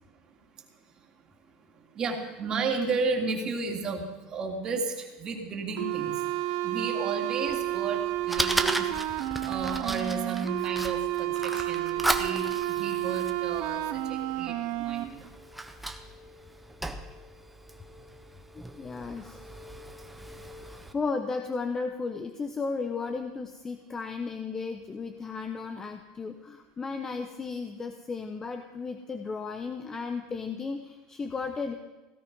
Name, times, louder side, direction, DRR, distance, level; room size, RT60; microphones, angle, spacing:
voice 1, 1.9-6.1 6.6-8.9 9.4-15.3, right 4 dB, 35° right, 2 dB, 3.0 m, -33 dB
sound 1, 5.8-15.0, right 15 dB, 65° right, 1.1 m, -31 dB
Fire, 7.5-20.9, right 1 dB, 5° right, 1.2 m, -36 dB
voice 2, 18.8-19.4 20.7-31.7, left 4 dB, 20° left, 6 dB, 1.0 m, -34 dB
17.0 x 13.0 x 5.6 m, 1.2 s
supercardioid pair, 120°, 2 cm